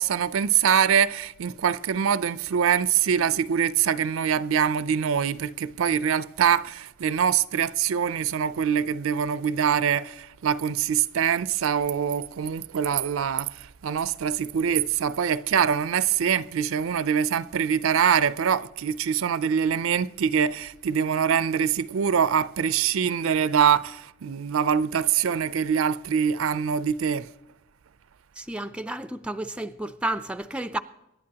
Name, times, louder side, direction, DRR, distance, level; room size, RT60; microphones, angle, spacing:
voice 1, 0.0-13.5 13.8-27.3, right 8 dB, 80° right, 0.4 m, -24 dB
voice 2, 28.4-30.8, right 1 dB, 5° right, 0.4 m, -31 dB
24.5 x 11.0 x 2.9 m
head